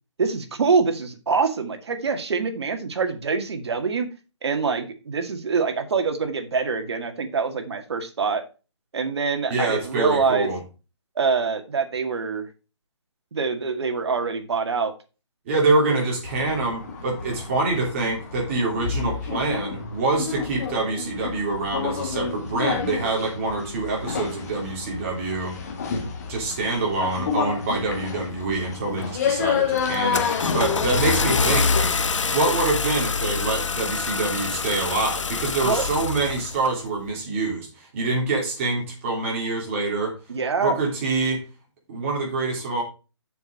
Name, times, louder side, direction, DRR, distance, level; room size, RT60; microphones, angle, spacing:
voice 1, 0.2-4.1 4.4-8.4 8.9-10.5 11.2-12.5 13.3-14.9 35.6-35.9 40.3-40.8, right 5 dB, 60° right, 6 dB, 1.9 m, -25 dB
voice 2, 9.5-10.6 15.4-25.6 26.3-31.9 32.3-40.1 40.6-41.4 41.9-42.8, right 3 dB, 25° right, -1 dB, 3.4 m, -25 dB
sound 1, 16.2-32.4, left 6 dB, 35° left, 2.0 m, -30 dB
Car / Engine starting, 29.0-29.3 29.8-36.7, left 4 dB, 90° left, 0.9 m, -25 dB
6.9 x 6.1 x 5.2 m, 0.32 s
hypercardioid pair, 170°, 15 cm